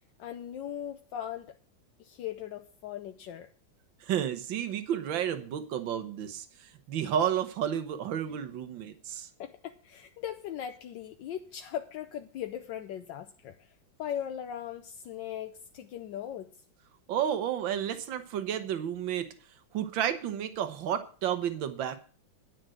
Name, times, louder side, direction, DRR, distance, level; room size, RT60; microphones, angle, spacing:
voice 1, 0.2-1.5 2.0-3.5 9.4-13.7 14.0-16.5, left 10 dB, 75° left, 6 dB, 1.4 m, -39 dB
voice 2, 4.0-9.3 17.1-19.3 19.7-22.0, right 9 dB, 80° right, 10 dB, 1.8 m, -31 dB
10.0 x 6.2 x 7.6 m, 0.41 s
omnidirectional pair, 2.0 m